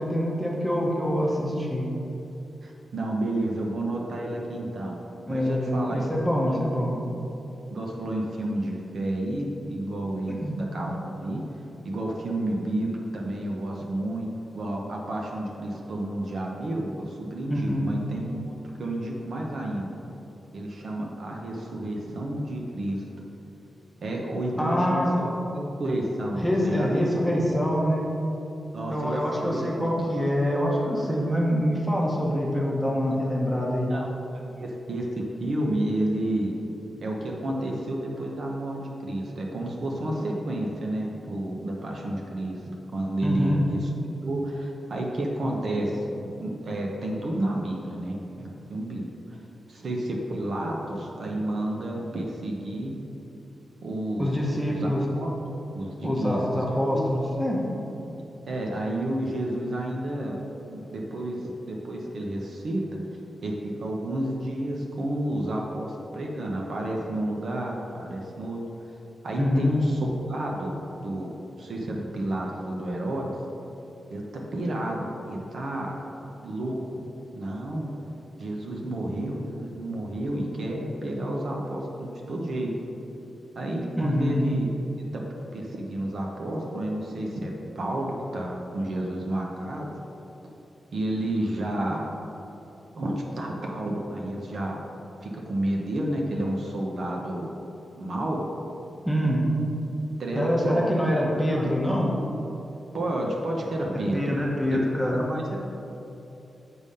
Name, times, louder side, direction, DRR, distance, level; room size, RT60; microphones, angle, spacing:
voice 1, 0.0-1.9 5.3-6.9 10.3-10.5 17.5-17.9 24.6-25.1 26.3-28.2 28.9-33.9 43.2-43.6 54.2-55.0 56.0-57.7 69.4-69.9 83.9-84.4 99.0-99.4 100.3-102.1 103.9-105.2 105.5-105.6, equal, 5° right, -3 dB, 1.1 m, -25 dB
voice 2, 2.6-5.0 5.3-6.2 6.5-7.0 7.7-19.9 20.5-23.0 24.0-27.1 28.7-29.9 33.9-34.1 34.4-36.5 37.0-42.6 42.9-43.9 44.2-46.1 46.4-49.4 49.7-53.0 53.8-54.3 54.7-55.3 55.7-56.6 56.9-57.0 58.5-60.4 60.7-63.0 63.4-68.6 69.2-70.8 71.0-71.3 71.6-73.3 74.1-74.2 74.5-75.9 76.4-77.0 77.3-77.9 78.4-82.7 83.5-84.7 85.0-85.2 85.5-89.9 90.9-92.1 92.9-94.8 95.2-97.5 98.0-98.4 100.2-101.7 102.9-104.3 104.7-104.8 105.1-105.4, right 1 dB, 60° right, -1 dB, 0.9 m, -30 dB
8.0 x 3.7 x 5.5 m, 2.9 s
wide cardioid pair, 120°, 0 cm